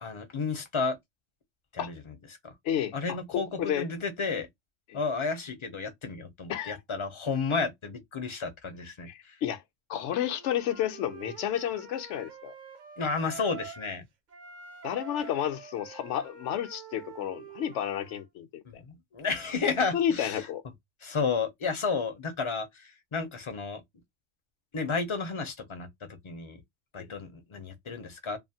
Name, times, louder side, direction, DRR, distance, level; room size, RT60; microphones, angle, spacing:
voice 1, 0.0-1.0 1.7-2.0 2.4-2.5 2.9-4.5 4.9-9.3 13.0-14.0 18.7-20.4 21.0-23.8 24.7-26.6 26.9-28.4, left 4 dB, 40° left, 0.5 m, -32 dB
voice 2, 2.6-3.9 4.9-5.0 6.5-6.8 9.1-9.6 9.9-12.5 14.8-18.8 19.9-20.6 27.0-27.1, left 10 dB, 80° left, 0.9 m, -31 dB
Wind instrument woodwind instrument, 10.3-14.0 14.3-18.2, right 6 dB, 50° right, 0.6 m, -46 dB
2.5 x 2.4 x 2.7 m
omnidirectional pair, 1.2 m